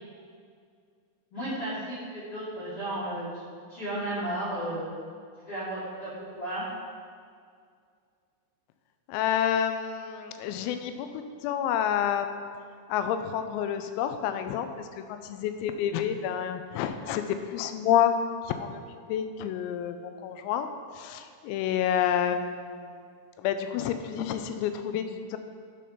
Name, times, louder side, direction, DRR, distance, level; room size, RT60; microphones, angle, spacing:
voice 1, 1.3-3.3 3.7-4.8 5.5-6.6, right 1 dB, 50° left, -11 dB, 1.8 m, -33 dB
voice 2, 9.1-11.1 11.4-12.5 12.9-18.2 18.5-18.8 19.1-20.7 20.9-23.0 23.4-25.4, left 9 dB, 85° left, 8 dB, 3.3 m, -29 dB
12.0 x 4.3 x 5.0 m, 2.2 s
omnidirectional pair, 5.9 m